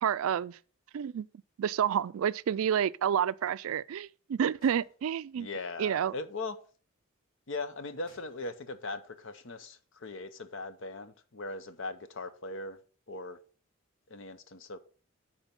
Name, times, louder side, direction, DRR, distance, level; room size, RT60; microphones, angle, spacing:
voice 1, 0.0-0.6 0.9-1.3 1.6-5.5 5.8-6.1, right 8 dB, 75° right, 0.3 m, -29 dB
sound 1, 4.6-5.8 8.1-10.5, left 1 dB, 40° left, 4.4 m, -66 dB
voice 2, 5.4-6.6 7.5-12.8 13.1-13.4 14.1-14.8, left 3 dB, 60° left, 0.7 m, -39 dB
9.0 x 4.4 x 5.2 m
head